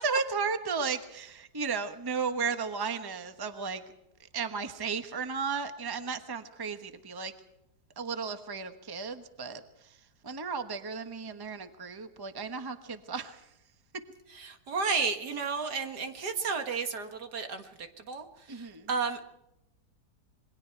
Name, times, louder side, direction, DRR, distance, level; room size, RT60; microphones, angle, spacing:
voice 1, 0.0-3.8 4.3-7.3 8.0-9.6 10.2-13.4 18.5-18.9, right 5 dB, 15° right, 8 dB, 1.1 m, -34 dB
voice 2, 14.4-19.3, right 5 dB, 70° right, 7 dB, 2.2 m, -33 dB
27.5 x 22.0 x 4.6 m, 0.84 s
omnidirectional pair, 1.8 m